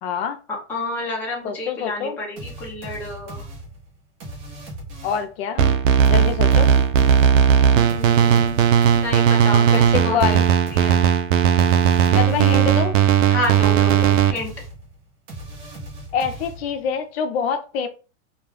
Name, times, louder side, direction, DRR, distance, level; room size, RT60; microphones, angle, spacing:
voice 1, 0.0-0.4 1.4-2.2 5.0-5.7 6.1-6.7 9.7-10.5 12.1-13.0 16.1-17.9, left 7 dB, 55° left, 0.5 m, -25 dB
voice 2, 0.7-3.5 7.9-8.6 9.0-10.4 10.7-11.0 13.3-14.5, left 1 dB, 5° left, 0.3 m, -30 dB
sound 1, 2.4-5.4 6.0-12.8 13.4-16.9, right 1 dB, 35° right, 0.8 m, -38 dB
sound 2, 5.6-14.3, right 8 dB, 85° right, 0.5 m, -16 dB
2.3 x 2.3 x 3.2 m
supercardioid pair, 155°, 37 cm